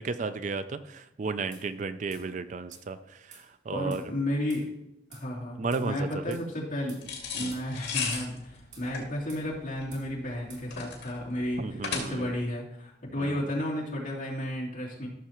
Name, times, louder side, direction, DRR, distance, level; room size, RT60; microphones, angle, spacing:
voice 1, 0.0-4.0 5.6-6.4 7.4-7.5 11.6-12.3 13.2-13.4, right 4 dB, 45° right, 12 dB, 0.4 m, -34 dB
sound 1, 1.5-1.7 2.1-2.3 2.7-2.9 3.3-3.5 3.9-4.1 4.5-4.7 5.1-5.3 5.7-5.9 6.3-6.5 6.9-7.1 7.5-7.7 8.1-8.3 8.7-8.9 9.3-9.5 9.9-10.1 10.5-10.7, right 5 dB, 75° right, 2.8 m, -51 dB
voice 2, 3.7-4.7 5.1-7.0 7.3-15.1, left 1 dB, 50° left, -5 dB, 2.9 m, -33 dB
sound 2, 7.0-12.4, left 5 dB, 75° left, 2.2 m, -36 dB
14.0 x 6.6 x 3.0 m, 0.83 s
head